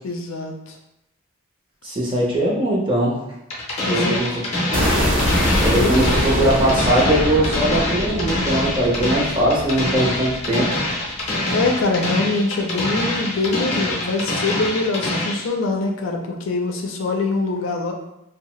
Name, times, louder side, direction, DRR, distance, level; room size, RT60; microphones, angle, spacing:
voice 1, 0.0-0.7 3.9-4.2 5.7-6.0 11.5-17.9, left 3 dB, 75° left, 2 dB, 0.4 m, -23 dB
voice 2, 1.8-3.2 3.9-4.3 5.6-10.7, right 1 dB, 25° right, -4 dB, 0.6 m, -20 dB
sound 1, 3.5-15.5, left 1 dB, 30° left, 0.6 m, -25 dB
sound 2, 4.7-10.8, equal, 75° right, 0.8 m, -23 dB
2.7 x 2.0 x 3.0 m, 0.85 s
head